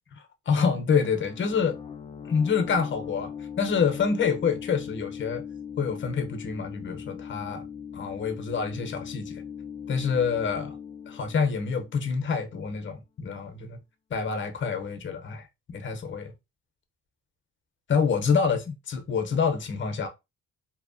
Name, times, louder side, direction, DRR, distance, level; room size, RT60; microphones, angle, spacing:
voice 1, 0.5-1.8 2.2-3.3 3.6-5.4 5.8-7.6 7.9-9.4 9.9-10.7 11.1-13.8 14.1-16.3 17.9-20.1, left 6 dB, 40° left, 0.7 m, -27 dB
sound 1, 1.0-12.6, left 7 dB, 20° left, 0.3 m, -40 dB
2.7 x 2.1 x 2.5 m
cardioid pair, 90°, 30 cm